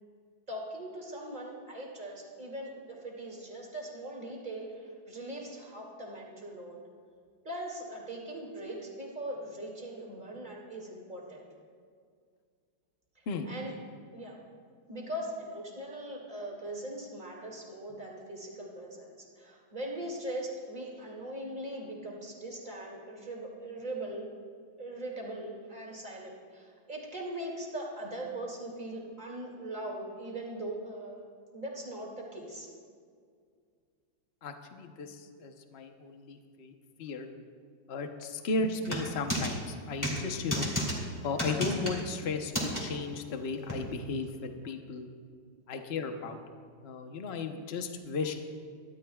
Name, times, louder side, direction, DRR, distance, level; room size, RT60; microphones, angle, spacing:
voice 1, 0.5-6.8 7.4-11.5 13.4-13.7 14.1-14.4 14.9-24.3 24.8-31.2 31.5-32.7, right 1 dB, 25° right, -2 dB, 2.4 m, -40 dB
voice 2, 34.4-36.7 37.0-37.3 37.9-40.7 41.2-45.1 45.7-46.4 46.8-48.3, left 3 dB, 45° left, 5 dB, 0.8 m, -35 dB
sound 1, 38.8-39.5 40.0-40.2 40.5-40.9 41.4-42.0 42.5-42.8 43.7-43.8, equal, 10° left, 2.4 m, -31 dB
23.5 x 12.5 x 2.3 m, 2.1 s
omnidirectional pair, 2.2 m